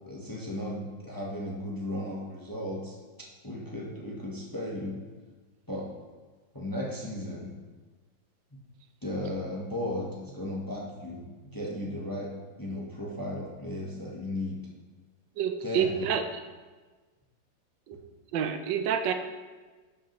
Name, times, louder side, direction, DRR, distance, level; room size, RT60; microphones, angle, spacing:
voice 1, 0.1-3.0 3.4-5.0 5.7-5.9 6.5-7.5 8.5-8.6 9.0-12.3 12.6-14.6 15.6-16.1, left 1 dB, 20° left, -3 dB, 0.6 m, -35 dB
voice 2, 15.4-16.2 18.3-19.1, right 8 dB, 75° right, 7 dB, 1.3 m, -27 dB
12.0 x 5.4 x 3.0 m, 1.3 s
omnidirectional pair, 2.1 m